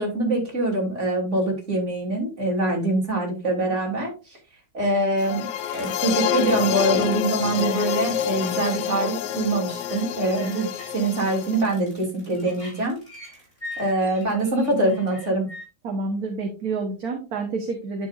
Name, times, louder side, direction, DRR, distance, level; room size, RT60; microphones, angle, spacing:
voice 1, 0.0-4.4 4.7-5.5 5.7-13.0 13.8-15.5, right 2 dB, 45° right, -1 dB, 3.3 m, -24 dB
sound 1, 5.2-11.6, left 10 dB, 75° left, 1.2 m, -27 dB
sound 2, 5.6-15.7, left 1 dB, 35° left, 4.8 m, -43 dB
voice 2, 15.8-18.1, right 3 dB, 65° right, 3 dB, 1.6 m, -28 dB
10.0 x 6.8 x 2.5 m, 0.32 s
omnidirectional pair, 1.8 m